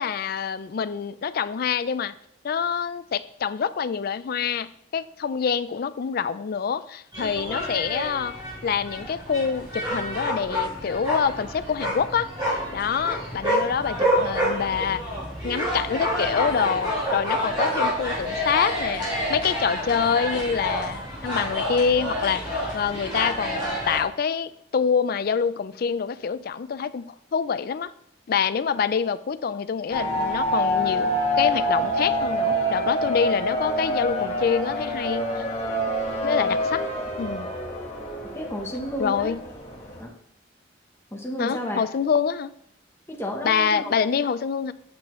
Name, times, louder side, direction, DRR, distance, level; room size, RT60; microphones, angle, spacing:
voice 1, 0.0-2.1 2.4-8.4 8.6-12.3 12.7-15.0 15.4-27.9 28.3-31.1 31.4-35.4 36.2-36.8 37.2-37.5 39.0-39.4 41.4-42.5 43.4-44.7, left 6 dB, 50° left, 14 dB, 0.4 m, -26 dB
sound 1, 7.1-24.0, equal, 25° right, 3.4 m, -28 dB
sound 2, 29.9-40.0, equal, 35° left, 1.3 m, -26 dB
voice 2, 38.3-39.3 40.0-40.1 41.1-41.8 43.1-43.9, left 1 dB, 15° left, -1 dB, 1.0 m, -31 dB
8.2 x 6.5 x 3.1 m, 0.70 s
head